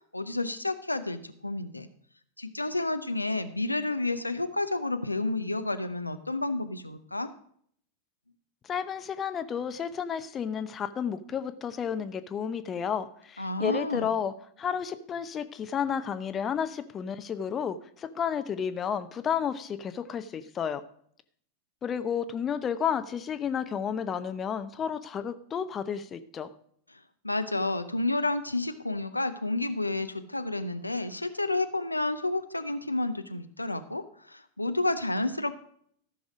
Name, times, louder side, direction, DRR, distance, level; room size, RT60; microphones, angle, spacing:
voice 1, 0.1-1.9 2.4-7.3 13.4-14.1 26.9-27.0 27.2-35.5, left 2 dB, 85° left, 9 dB, 0.6 m, -30 dB
voice 2, 8.6-14.3 14.6-20.8 21.8-26.5, left 7 dB, 25° left, 11 dB, 0.7 m, -31 dB
14.0 x 6.4 x 5.0 m, 0.63 s
figure-of-eight pair, 90°, 0 cm